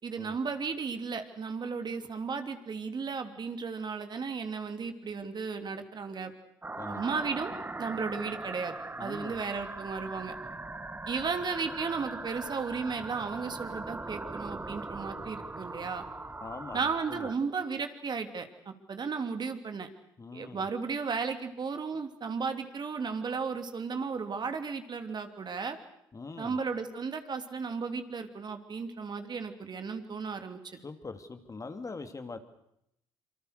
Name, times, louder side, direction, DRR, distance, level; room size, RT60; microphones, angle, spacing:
voice 1, 0.0-6.3 6.9-7.5 7.8-10.3 11.1-16.0 16.7-19.9 20.3-25.8 26.4-30.6, right 5 dB, 45° right, 7 dB, 3.1 m, -34 dB
sound 1, 6.6-17.3, right 2 dB, 20° right, 1.6 m, -40 dB
voice 2, 9.0-9.4 16.4-17.3 20.2-20.6 26.1-26.6 30.8-32.4, left 4 dB, 30° left, 8 dB, 2.7 m, -42 dB
26.5 x 25.0 x 6.7 m, 0.77 s
hypercardioid pair, 55°, 11 cm